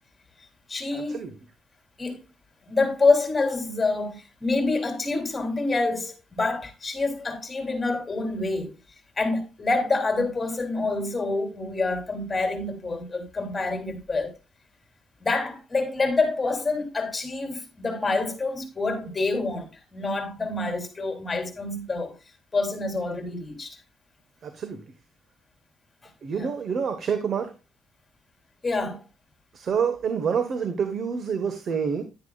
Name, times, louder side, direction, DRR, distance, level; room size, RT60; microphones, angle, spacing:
voice 1, 0.7-1.2 2.0-2.2 2.7-8.8 9.2-14.4 15.2-22.1 22.5-23.8 26.3-26.5 28.6-29.0, left 3 dB, 25° left, 3.1 m, -27 dB
voice 2, 24.4-24.8 26.2-27.5 29.5-32.0, right 6 dB, 55° right, 1.2 m, -27 dB
10.5 x 9.8 x 2.4 m
cardioid pair, 90°, 0 cm